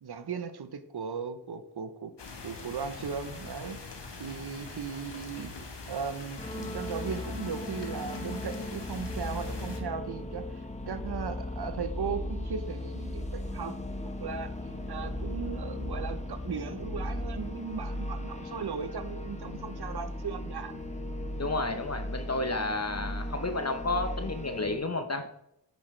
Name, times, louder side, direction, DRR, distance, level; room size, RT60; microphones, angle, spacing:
voice 1, 0.0-2.1 2.4-3.8 4.2-5.5 5.9-13.8 14.2-14.5 14.9-20.8, right 6 dB, 65° right, 11 dB, 0.8 m, -37 dB
sound 1, 2.2-9.8, left 3 dB, 70° left, 1.4 m, -43 dB
sound 2, 6.4-24.8, left 1 dB, 15° left, 1.2 m, -37 dB
voice 2, 21.4-25.3, left 2 dB, 35° left, 7 dB, 0.8 m, -31 dB
8.3 x 6.2 x 3.2 m, 0.80 s
cardioid pair, 40°, 43 cm